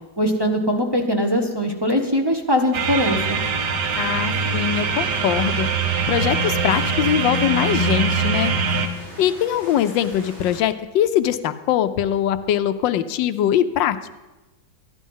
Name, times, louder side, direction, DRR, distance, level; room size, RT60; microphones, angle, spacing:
voice 1, 0.2-3.4, equal, 20° right, 3 dB, 0.8 m, -21 dB
sound 1, 2.7-8.9, right 5 dB, 65° right, 1.6 m, -22 dB
sound 2, 2.7-10.6, equal, 80° right, 3.9 m, -41 dB
voice 2, 4.0-5.7 6.1-8.6 9.2-14.1, left 10 dB, 75° left, 12 dB, 1.3 m, -22 dB
14.0 x 10.5 x 5.5 m, 1.1 s
omnidirectional pair, 2.1 m